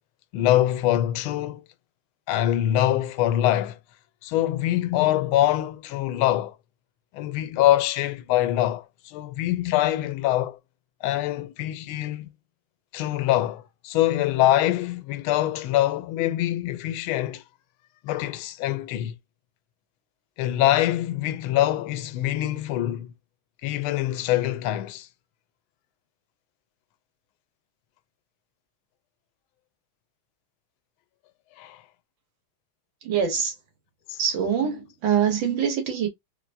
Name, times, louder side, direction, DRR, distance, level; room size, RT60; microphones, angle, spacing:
voice 1, 0.3-1.6 2.3-3.8 4.2-6.5 7.1-10.6 11.0-12.3 12.9-17.4 18.0-19.1 20.4-23.1 23.6-25.1 31.6-31.8 34.1-34.2, left 13 dB, 85° left, 1.4 m, -24 dB
voice 2, 33.0-33.5 34.2-36.1, right 8 dB, 70° right, 1.9 m, -24 dB
3.4 x 3.2 x 2.5 m
omnidirectional pair, 2.2 m